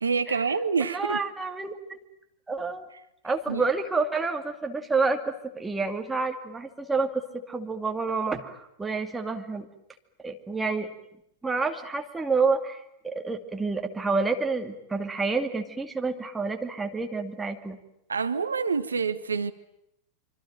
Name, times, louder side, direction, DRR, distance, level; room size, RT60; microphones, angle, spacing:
voice 1, 0.0-1.2 3.5-3.6 18.1-19.5, right 5 dB, 75° right, 1.0 m, -27 dB
voice 2, 0.8-2.0 2.5-2.9 3.2-9.7 10.2-10.9 11.4-17.8, right 4 dB, 10° right, 2.5 m, -29 dB
26.0 x 25.0 x 9.1 m
figure-of-eight pair, 90°, 0 cm